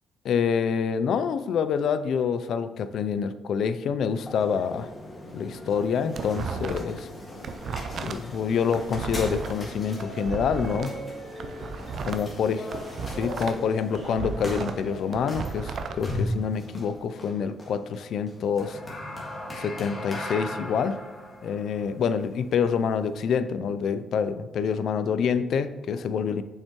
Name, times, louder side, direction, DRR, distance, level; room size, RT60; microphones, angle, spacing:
voice 1, 0.2-4.9 5.3-7.1 8.0-11.0 12.0-12.6 13.2-18.8 19.5-21.0 21.4-26.4, left 6 dB, 65° left, 12 dB, 0.4 m, -27 dB
sound 1, 4.1-23.2, left 1 dB, 30° left, 1.7 m, -38 dB
sound 2, 5.8-7.0 7.3-10.9 11.3-13.6 13.9-16.0, right 5 dB, 60° right, 0.5 m, -34 dB
6.9 x 5.6 x 3.0 m, 1.1 s
cardioid pair, 90°, 0 cm